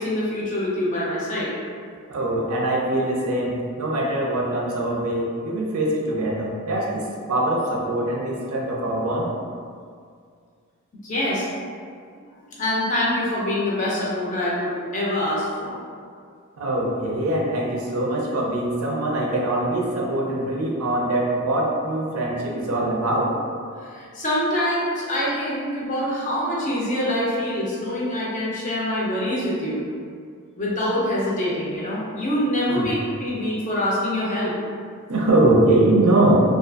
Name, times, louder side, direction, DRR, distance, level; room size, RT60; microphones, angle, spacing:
voice 1, 0.0-1.6 11.0-11.5 12.5-15.8 23.8-29.8 30.6-34.5, left 1 dB, 35° left, -6 dB, 0.5 m, -25 dB
voice 2, 2.1-9.3 16.6-23.3 32.7-32.9 35.1-36.3, right 1 dB, 75° right, -2 dB, 0.5 m, -23 dB
2.5 x 2.4 x 2.3 m, 2.1 s
head